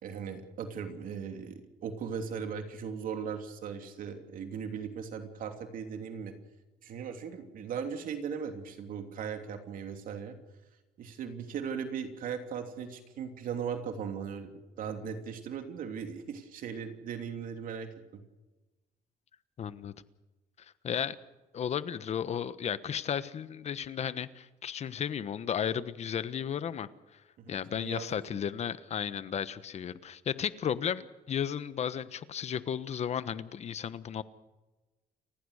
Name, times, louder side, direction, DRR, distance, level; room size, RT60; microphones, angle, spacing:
voice 1, 0.0-6.3 6.8-10.3 11.0-18.2 27.4-28.4, right 7 dB, 65° right, 6 dB, 3.0 m, -38 dB
voice 2, 19.6-19.9 20.8-21.2 21.5-26.9 27.5-34.2, left 8 dB, 45° left, 14 dB, 1.2 m, -34 dB
30.0 x 15.5 x 6.6 m, 1.1 s
cardioid pair, 115°, 16 cm